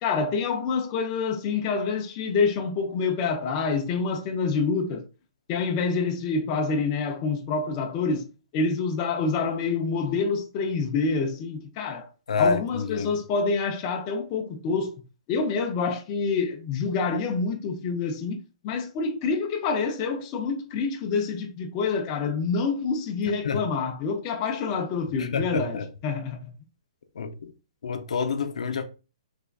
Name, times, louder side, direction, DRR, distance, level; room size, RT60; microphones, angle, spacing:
voice 1, 0.0-5.0 5.5-8.3 8.5-12.1 12.4-14.9 15.3-26.5, left 4 dB, 25° left, 0.4 m, -27 dB
voice 2, 12.3-13.1 23.4-23.6 25.2-25.9 27.2-27.5 27.8-28.8, left 5 dB, 75° left, 0.5 m, -28 dB
3.5 x 3.4 x 2.3 m
hypercardioid pair, 160°, 3 cm